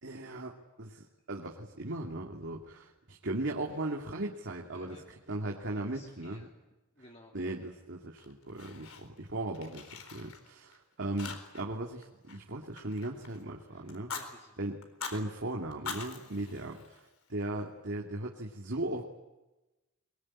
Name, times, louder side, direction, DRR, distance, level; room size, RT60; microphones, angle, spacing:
voice 1, 0.0-5.0 5.3-6.5 7.3-14.1 14.6-14.8 15.1-19.0, right 2 dB, 55° right, -1 dB, 2.6 m, -37 dB
voice 2, 4.7-6.5 6.9-7.3 13.7-13.9 14.1-14.6 16.3-16.6, left 1 dB, 30° left, 0 dB, 2.7 m, -56 dB
Fire, 8.2-9.3 9.5-10.8 11.2-11.8 12.0-13.4 13.9-14.3 14.8-15.2 15.7-17.3, left 5 dB, 75° left, 4.2 m, -43 dB
23.0 x 23.0 x 10.0 m, 1.0 s
head